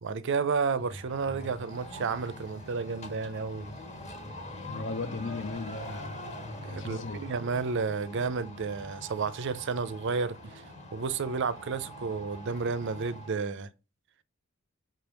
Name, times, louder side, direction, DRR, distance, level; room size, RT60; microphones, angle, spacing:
voice 1, 0.0-3.7 6.6-10.5 10.9-13.7, right 5 dB, 55° right, 0.5 m, -31 dB
sound 1, 0.7-13.5, left 1 dB, 30° left, 1.5 m, -44 dB
voice 2, 4.7-6.2 6.7-7.3, left 3 dB, 60° left, 0.6 m, -36 dB
5.9 x 3.4 x 5.9 m
head